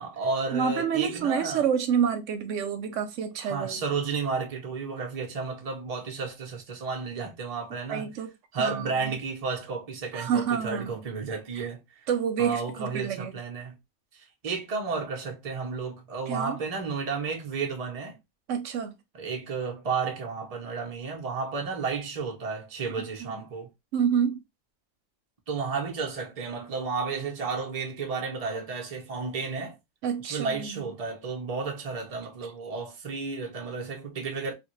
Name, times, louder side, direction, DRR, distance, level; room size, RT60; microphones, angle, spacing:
voice 1, 0.0-1.7 3.4-8.2 8.5-12.1 12.4-13.8 14.1-18.2 19.1-23.7 25.5-29.8 30.3-34.5, right 4 dB, 35° right, 0.8 m, -32 dB
voice 2, 0.5-3.8 7.9-8.3 8.6-9.1 10.1-10.9 11.6-11.7 12.1-13.4 16.3-16.6 18.5-18.9 23.2-23.3 23.9-24.4 30.0-30.9, right 7 dB, 85° right, 1.0 m, -28 dB
3.4 x 2.2 x 3.0 m
omnidirectional pair, 1.3 m